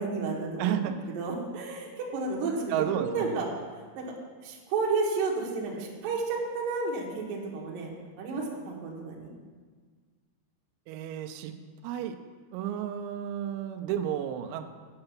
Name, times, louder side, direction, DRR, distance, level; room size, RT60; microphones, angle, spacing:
voice 1, 0.0-3.5 3.9-4.0 4.4-7.9 8.2-9.3, right 4 dB, 65° right, -2 dB, 2.4 m, -32 dB
voice 2, 0.6-1.0 2.7-3.4 10.9-11.6 11.8-12.2 12.5-14.7, right 10 dB, 90° right, 7 dB, 3.4 m, -32 dB
8.8 x 7.8 x 5.8 m, 1.5 s
omnidirectional pair, 5.9 m